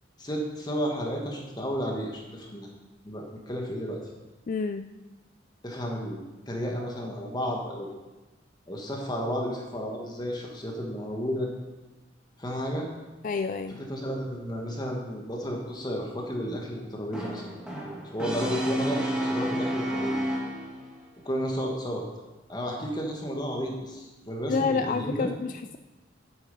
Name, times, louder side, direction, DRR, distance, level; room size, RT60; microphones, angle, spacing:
voice 1, 0.2-2.7 3.0-4.0 5.6-7.9 8.7-11.5 12.4-12.9 13.7-17.6 18.1-20.2 21.2-22.0 22.5-25.3, equal, 20° left, 0 dB, 1.4 m, -32 dB
voice 2, 4.5-4.9 13.2-13.8 24.5-25.8, left 4 dB, 45° left, 9 dB, 0.3 m, -28 dB
Brass instrument, 17.1-20.9, right 1 dB, 5° right, 1.6 m, -30 dB
8.3 x 7.9 x 5.4 m, 1.1 s
head